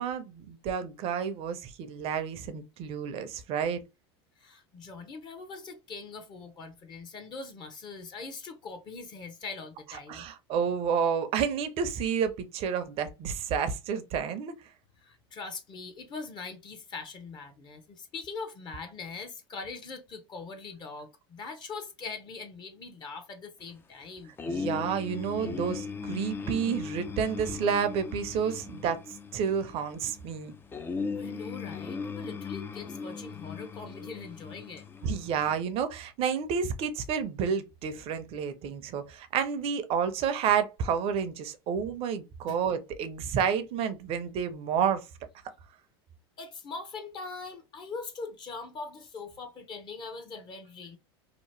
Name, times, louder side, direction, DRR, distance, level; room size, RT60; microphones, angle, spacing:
voice 1, 0.0-3.8 10.1-14.5 24.5-29.0 29.3-30.5 35.0-45.0, right 7 dB, 45° right, 0.6 m, -30 dB
voice 2, 4.4-10.3 15.0-24.3 31.1-34.8 42.5-42.6 46.4-51.0, left 4 dB, 35° left, 0.7 m, -42 dB
sound 1, 24.4-35.6, left 5 dB, 15° left, 0.3 m, -38 dB
2.8 x 2.0 x 3.1 m
hypercardioid pair, 100°, 13 cm